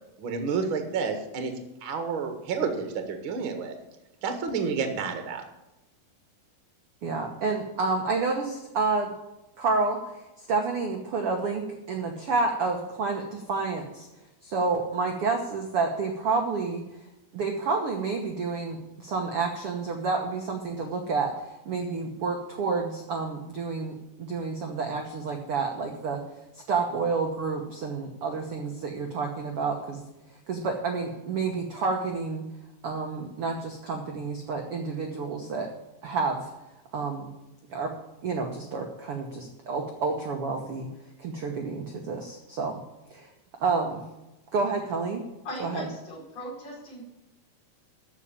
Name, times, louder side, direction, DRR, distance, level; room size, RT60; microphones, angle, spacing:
voice 1, 0.2-3.7 4.2-5.4, right 5 dB, 50° right, 5 dB, 1.6 m, -30 dB
voice 2, 7.0-9.1 9.6-14.1 14.4-17.0 17.3-26.2 26.5-30.0 30.5-32.4 32.8-35.7 36.0-36.5 36.9-37.3 37.7-37.9 38.2-40.9 41.2-42.8 43.1-43.3 43.6-44.0 44.5-45.2 45.6-45.9, right 4 dB, 90° right, 2 dB, 1.2 m, -29 dB
voice 3, 45.4-47.0, equal, 40° left, -3 dB, 5.3 m, -39 dB
14.0 x 5.8 x 8.7 m, 0.95 s
omnidirectional pair, 4.5 m